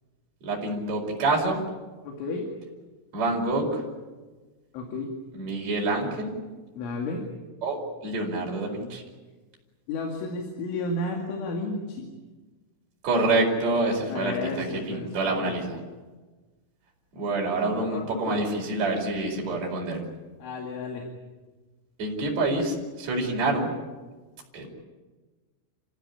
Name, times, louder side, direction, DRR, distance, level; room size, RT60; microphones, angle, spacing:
voice 1, 0.4-1.6 3.1-3.8 5.3-6.3 7.6-9.0 13.0-15.8 17.1-20.0 22.0-23.7 24.5-24.7, right 2 dB, 35° right, -2 dB, 5.6 m, -27 dB
voice 2, 2.0-2.5 4.7-5.1 6.8-7.2 9.9-12.1 14.1-15.6 17.7-18.5 20.4-21.1, left 3 dB, 75° left, 1 dB, 4.7 m, -32 dB
28.0 x 16.0 x 9.9 m, 1.3 s
omnidirectional pair, 5.6 m